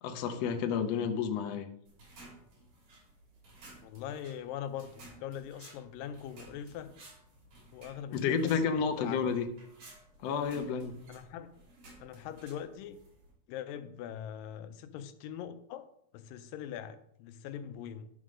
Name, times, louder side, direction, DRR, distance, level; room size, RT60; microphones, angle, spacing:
voice 1, 0.0-1.6 8.1-9.5 10.2-10.9, left 6 dB, 70° left, 5 dB, 1.6 m, -30 dB
sound 1, 1.9-13.3, right 2 dB, 65° right, 4.4 m, -55 dB
voice 2, 3.8-6.9 7.7-9.2 11.1-11.5 12.0-13.0 13.5-15.9 16.1-18.1, left 9 dB, 85° left, 10 dB, 2.3 m, -42 dB
11.0 x 3.7 x 6.3 m, 0.70 s
omnidirectional pair, 3.9 m